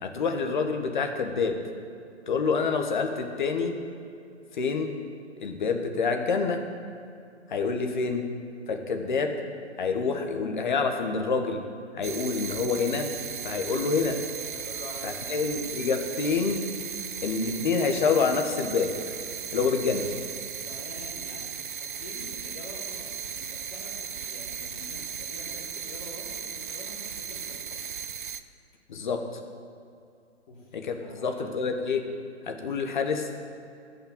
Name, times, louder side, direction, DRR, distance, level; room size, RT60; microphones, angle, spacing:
voice 1, 0.0-1.6 2.3-3.7 4.5-4.9 5.4-6.6 7.5-8.2 8.7-9.3 9.8-11.6 11.9-13.1 13.4-14.2 15.0-16.6 17.2-19.1 19.5-20.1 28.9-29.4 30.7-32.0 32.4-33.3, left 5 dB, 45° left, 5 dB, 1.4 m, -27 dB
sound 1, 12.0-28.4, right 7 dB, 50° right, 0.6 m, -37 dB
voice 2, 14.5-15.5 20.6-23.1 23.4-27.9 30.5-31.4, left 1 dB, 30° left, -5 dB, 3.6 m, -46 dB
15.0 x 5.8 x 7.7 m, 2.4 s
figure-of-eight pair, 135°, 34 cm